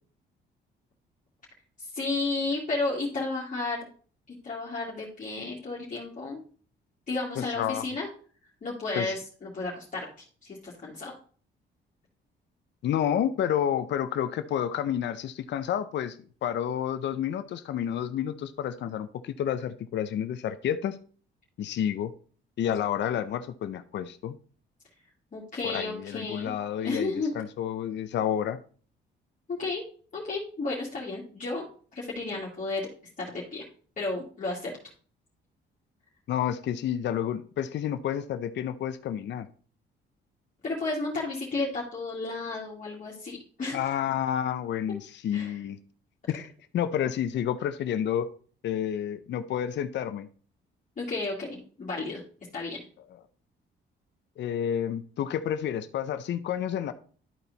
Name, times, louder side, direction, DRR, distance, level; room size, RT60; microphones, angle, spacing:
voice 1, 1.8-3.8 4.4-6.4 7.1-8.1 8.6-10.1 10.4-11.1 25.3-26.5 26.8-27.3 29.5-29.8 30.1-31.6 31.9-32.9 33.2-33.6 34.0-34.7 40.6-43.8 45.3-45.5 51.0-52.2 52.5-52.8, left 3 dB, 40° left, -5 dB, 2.2 m, -32 dB
voice 2, 7.4-7.8 9.0-9.2 12.8-21.0 21.6-22.1 22.6-24.4 25.6-28.6 36.3-39.5 43.7-45.8 46.3-48.3 48.6-50.3 54.4-56.9, left 9 dB, 65° left, 10 dB, 0.6 m, -30 dB
12.0 x 4.2 x 4.0 m, 0.43 s
cardioid pair, 90°, 20 cm